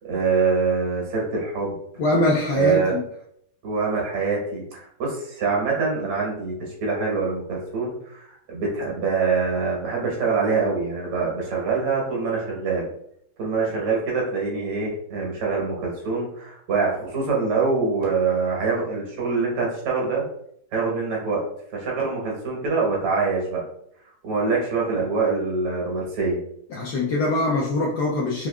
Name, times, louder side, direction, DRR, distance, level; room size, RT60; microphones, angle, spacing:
voice 1, 0.0-1.8 2.6-2.9 3.6-12.9 13.4-20.2 20.7-21.5 21.7-23.6 24.2-26.4, right 4 dB, 85° right, -3 dB, 2.1 m, -24 dB
voice 2, 2.0-3.0 26.7-28.5, left 2 dB, 80° left, -3 dB, 0.9 m, -23 dB
4.5 x 2.7 x 2.3 m, 0.71 s
omnidirectional pair, 2.3 m